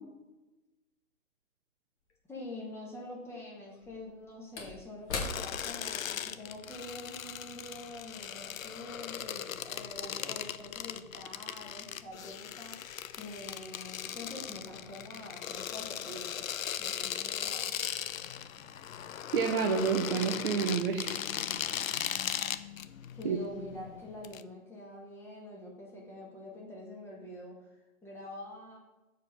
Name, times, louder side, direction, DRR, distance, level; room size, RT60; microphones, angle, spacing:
Slam / Wood, 2.1-2.2 3.7-8.4 8.7-8.8, left 3 dB, 50° left, 2.1 m, -43 dB
voice 1, 2.3-16.5 16.8-17.8 23.1-28.8, left 1 dB, 5° left, -4 dB, 1.9 m, -46 dB
sound 1, 5.1-24.4, left 9 dB, 65° left, 0.6 m, -38 dB
voice 2, 19.3-21.2 21.9-22.1 23.2-23.4, right 6 dB, 40° right, 4 dB, 0.8 m, -29 dB
7.6 x 5.0 x 5.6 m, 1.1 s
figure-of-eight pair, 130°, 43 cm